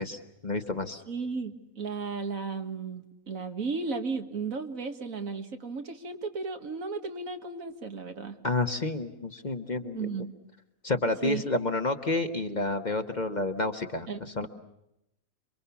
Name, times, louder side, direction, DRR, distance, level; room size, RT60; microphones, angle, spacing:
voice 1, 0.0-1.0 8.4-10.2 10.8-14.5, left 2 dB, 35° left, 7 dB, 1.3 m, -30 dB
voice 2, 1.1-8.4 9.9-10.3 11.2-11.4 14.1-14.5, right 4 dB, 75° right, 6 dB, 2.2 m, -35 dB
27.5 x 24.0 x 7.1 m, 0.84 s
omnidirectional pair, 1.4 m